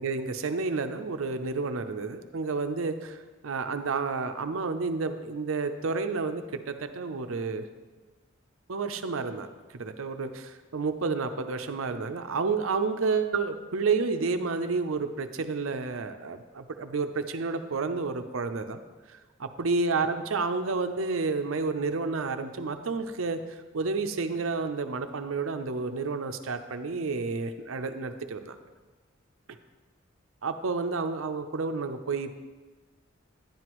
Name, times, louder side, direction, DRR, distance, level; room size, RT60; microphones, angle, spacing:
voice 1, 0.0-7.6 8.7-18.8 19.1-28.6 30.4-32.3, right 4 dB, 75° right, 8 dB, 0.6 m, -30 dB
10.5 x 9.5 x 3.0 m, 1.3 s
head